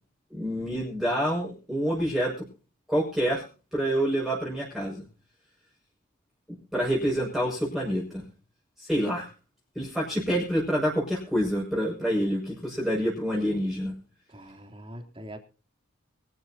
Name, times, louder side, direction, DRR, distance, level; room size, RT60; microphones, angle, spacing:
voice 1, 0.3-2.5 2.9-3.4 3.7-5.0 6.7-8.3 8.8-9.3 9.7-13.9, equal, ahead, -4 dB, 6.1 m, -27 dB
voice 2, 14.3-15.4, right 1 dB, 25° right, 5 dB, 3.1 m, -43 dB
23.5 x 13.5 x 2.8 m, 0.34 s
head